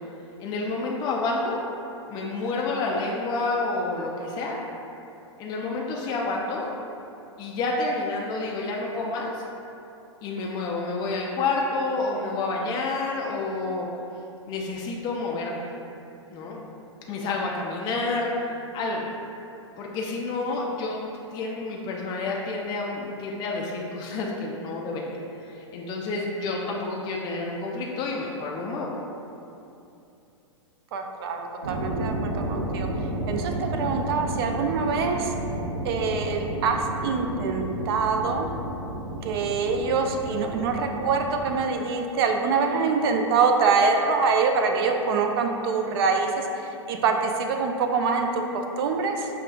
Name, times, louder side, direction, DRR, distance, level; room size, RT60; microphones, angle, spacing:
voice 1, 0.4-1.6 2.1-4.6 5.4-6.7 7.4-9.4 10.2-13.9 14.5-15.6 16.3-16.6 17.1-19.1 19.8-21.0 21.3-29.0, left 3 dB, 25° left, -2 dB, 0.3 m, -29 dB
voice 2, 30.9-32.9 33.3-35.3 35.8-38.5 39.2-46.5 46.9-49.3, right 4 dB, 50° right, 4 dB, 0.4 m, -25 dB
sound 1, 31.6-41.6, right 1 dB, 85° right, 0.7 m, -32 dB
5.4 x 2.3 x 2.3 m, 2.7 s
hypercardioid pair, 110°, 16 cm